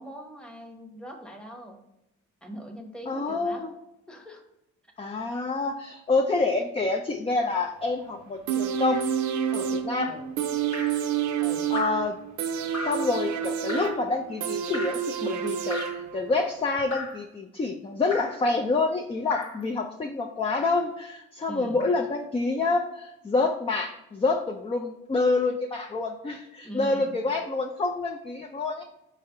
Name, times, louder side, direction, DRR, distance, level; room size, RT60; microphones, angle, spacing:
voice 1, 0.0-1.8 2.4-3.7 4.1-4.4 10.0-10.3 11.4-11.7 21.5-21.8 26.6-27.2, equal, 5° left, 2 dB, 1.0 m, -41 dB
voice 2, 3.1-3.7 5.0-9.1 9.5-10.1 11.7-12.2 12.8-28.8, left 3 dB, 20° left, 3 dB, 0.4 m, -27 dB
sound 1, 8.5-16.4 16.8-16.9, right 9 dB, 70° right, 0.6 m, -29 dB
Drip, 10.7-11.1 11.7-12.1 12.7-13.1 13.7-14.0 14.7-15.1 15.7-16.1 16.9-17.2 18.1-18.4 19.3-19.6 20.5-20.9 21.8-22.0, left 2 dB, 70° left, 1.4 m, -37 dB
4.3 x 3.3 x 3.6 m, 0.90 s
cardioid pair, 90°, 30 cm